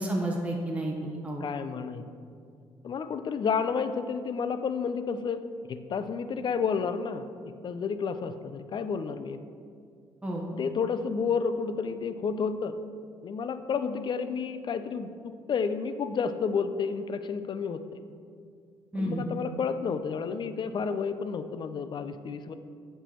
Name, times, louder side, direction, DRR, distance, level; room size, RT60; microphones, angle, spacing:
voice 1, 0.0-1.5 10.2-10.5 18.9-19.2, right 1 dB, 10° right, -2 dB, 1.0 m, -31 dB
voice 2, 1.4-2.1 2.8-5.4 5.7-7.3 7.6-9.4 10.5-12.7 13.2-18.0 18.9-22.5, left 5 dB, 45° left, 11 dB, 0.5 m, -31 dB
7.9 x 4.5 x 4.4 m, 2.2 s
supercardioid pair, 70°, 11 cm